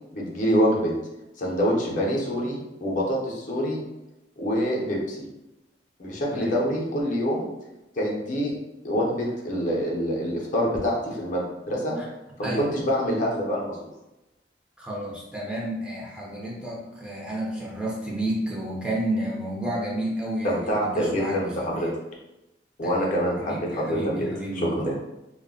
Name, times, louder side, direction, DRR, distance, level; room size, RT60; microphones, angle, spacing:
voice 1, 0.1-0.9 1.4-3.8 4.4-5.2 6.0-7.5 8.0-8.5 8.8-12.0 12.4-13.8 20.4-21.9 22.8-24.3 24.5-24.9, equal, 45° left, -2 dB, 0.6 m, -26 dB
voice 2, 6.3-6.6 12.0-12.1 12.4-12.8 14.8-21.9 22.8-24.8, right 1 dB, 5° right, -5 dB, 0.5 m, -31 dB
2.3 x 2.0 x 3.6 m, 0.95 s
head